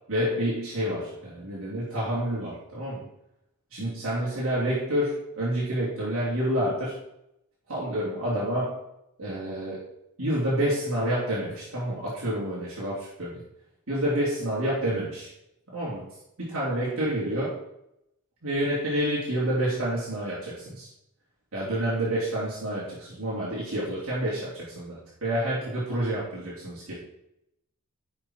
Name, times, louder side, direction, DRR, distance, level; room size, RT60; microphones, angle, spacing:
voice 1, 0.1-3.1 3.7-7.0 7.7-8.8 9.2-9.9 10.2-13.4 13.9-15.3 15.7-16.1 16.4-17.6 18.4-20.9 21.5-27.0, right 1 dB, 70° right, -8 dB, 3.4 m, -28 dB
11.5 x 6.5 x 4.7 m, 0.82 s
head